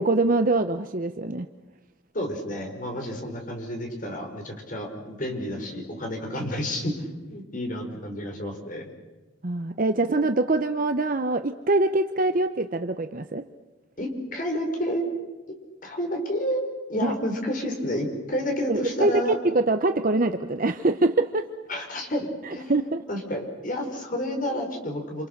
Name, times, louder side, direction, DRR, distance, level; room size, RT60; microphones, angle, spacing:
voice 1, 0.0-1.5 9.4-13.4 17.0-17.1 18.7-21.5 22.4-23.0, right 2 dB, 40° right, 8 dB, 0.8 m, -24 dB
voice 2, 2.1-8.9 14.0-15.0 15.8-19.4 21.7-22.7 23.1-25.3, equal, 40° left, 3 dB, 5.0 m, -30 dB
28.0 x 27.5 x 6.7 m, 1.2 s
head